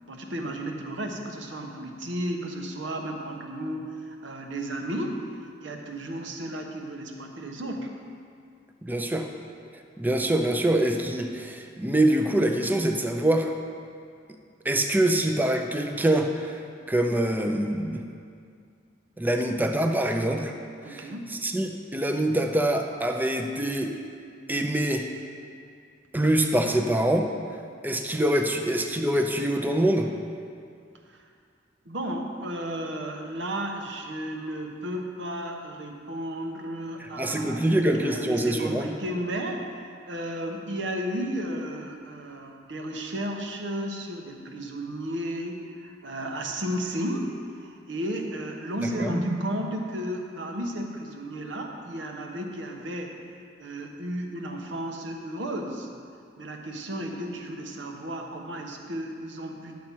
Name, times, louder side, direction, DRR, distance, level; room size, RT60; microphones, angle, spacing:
voice 1, 0.1-5.2 5.6-8.0 20.8-21.4 31.1-31.3 31.8-39.6 40.1-53.1 53.6-55.9 56.4-59.8, right 1 dB, 70° right, 2 dB, 1.0 m, -33 dB
voice 2, 8.8-9.3 10.0-13.5 14.6-16.6 16.9-18.0 19.2-20.5 20.8-23.9 24.5-25.1 26.1-27.3 27.8-30.1 37.2-38.9 49.0-49.2, right 1 dB, 10° right, 4 dB, 0.6 m, -25 dB
10.5 x 7.4 x 4.5 m, 2.3 s
head